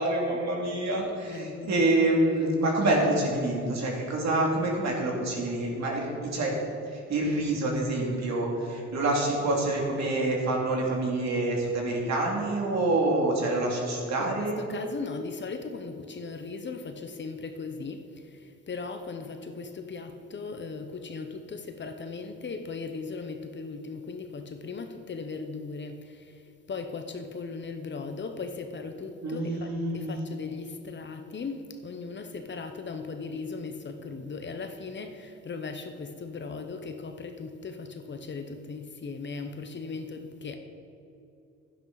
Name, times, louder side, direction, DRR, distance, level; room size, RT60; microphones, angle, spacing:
voice 1, 0.0-6.6 6.9-14.6 29.2-30.2, right 2 dB, 65° right, -1 dB, 2.5 m, -27 dB
voice 2, 1.3-1.8 14.2-40.6, left 4 dB, 40° left, 7 dB, 0.9 m, -38 dB
11.5 x 10.5 x 4.0 m, 2.7 s
cardioid pair, 90°, 30 cm